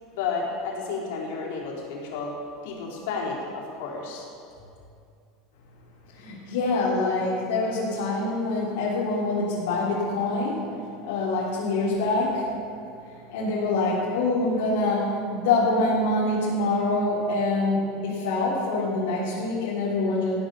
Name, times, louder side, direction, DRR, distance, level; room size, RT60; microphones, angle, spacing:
voice 1, 0.1-2.3 2.6-4.3, left 4 dB, 65° left, -3 dB, 4.1 m, -32 dB
voice 2, 6.1-10.6 11.1-12.5 13.3-20.3, left 2 dB, 90° left, -8 dB, 3.7 m, -25 dB
16.0 x 9.4 x 7.0 m, 2.4 s
supercardioid pair, 170°, 0 cm